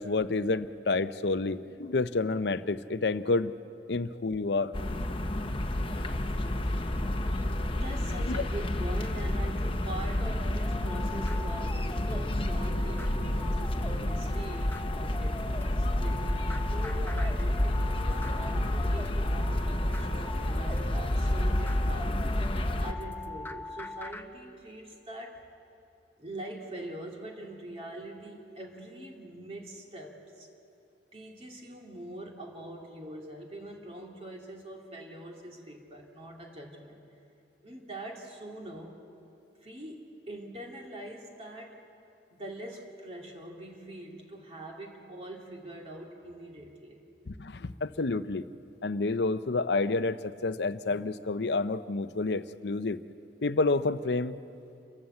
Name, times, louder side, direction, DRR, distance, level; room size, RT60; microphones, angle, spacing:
voice 1, 0.0-3.5 3.9-4.7 47.3-48.4 48.8-53.0 53.4-54.4, left 3 dB, 65° left, 13 dB, 0.6 m, -29 dB
sound 1, 4.7-22.9, left 1 dB, 30° left, 1.0 m, -30 dB
voice 2, 7.8-22.2 22.8-25.5 26.2-30.5 31.1-37.0 37.6-39.0 39.6-41.8 42.3-47.0, right 1 dB, 35° right, 0 dB, 2.6 m, -43 dB
sound 2, 10.4-24.3, left 2 dB, 10° left, 0.7 m, -43 dB
28.5 x 13.0 x 7.8 m, 2.7 s
head